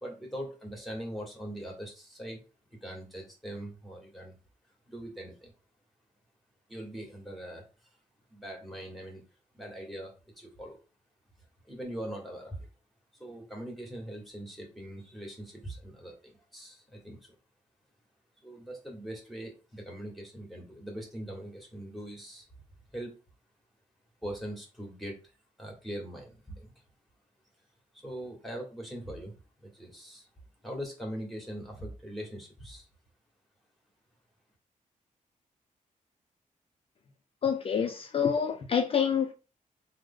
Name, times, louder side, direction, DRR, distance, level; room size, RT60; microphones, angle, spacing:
voice 1, 0.0-2.4 2.7-4.4 4.9-5.5 6.7-7.7 8.3-9.2 9.5-10.8 11.6-12.7 13.1-17.4 18.4-22.5 22.9-23.1 24.2-25.2 25.6-26.7 28.0-30.3 30.6-32.9, equal, ahead, 1.2 m, -41 dB
voice 2, 37.4-39.3, left 7 dB, 45° left, 0.4 m, -27 dB
3.2 x 2.0 x 3.5 m
cardioid pair, 100°, 14 cm